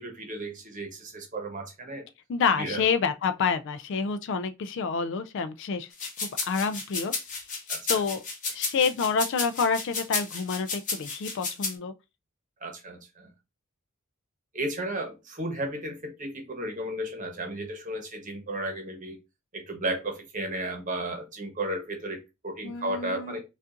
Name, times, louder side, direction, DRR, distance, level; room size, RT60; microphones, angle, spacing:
voice 1, 0.0-2.0 2.6-2.8 7.7-7.9 12.6-13.3 14.5-19.2 19.5-23.4, right 1 dB, 40° right, 1.0 m, -34 dB
voice 2, 2.3-6.1 6.4-7.1 7.9-8.2 8.5-11.9 22.6-23.4, left 5 dB, 60° left, 0.3 m, -28 dB
sound 1, 5.9-11.7, left 4 dB, 40° left, 1.0 m, -32 dB
5.2 x 2.5 x 2.5 m
head